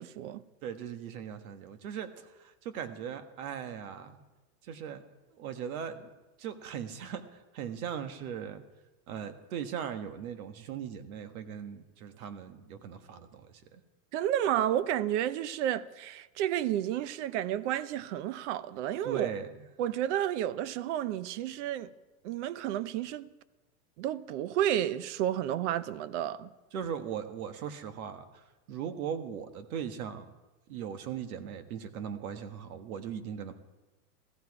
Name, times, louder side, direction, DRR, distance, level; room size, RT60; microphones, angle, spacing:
voice 1, 0.0-0.4 14.1-19.3 19.8-21.9 22.2-23.3 24.0-26.5, right 11 dB, 50° right, 0.7 m, -31 dB
voice 2, 0.6-4.2 4.6-5.0 5.4-6.1 6.4-8.6 9.1-13.8 19.0-19.7 26.7-30.3 30.7-33.5, right 8 dB, 65° right, 1.6 m, -39 dB
15.5 x 14.5 x 4.8 m
supercardioid pair, 150°, 46 cm